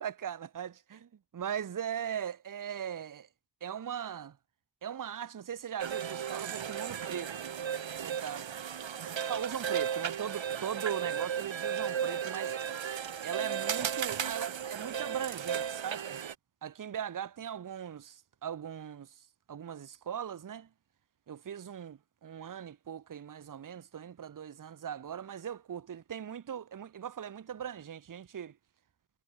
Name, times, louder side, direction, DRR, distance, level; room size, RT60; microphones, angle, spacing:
voice 1, 0.0-3.3 3.6-4.4 4.8-7.5 8.0-8.5 9.3-12.5 13.2-16.2 16.6-19.1 19.5-20.7 21.3-28.5, right 9 dB, 45° right, 0.8 m, -39 dB
sound 1, 5.8-16.3, right 8 dB, 85° right, 1.8 m, -35 dB
wide cardioid pair, 170°, 45 cm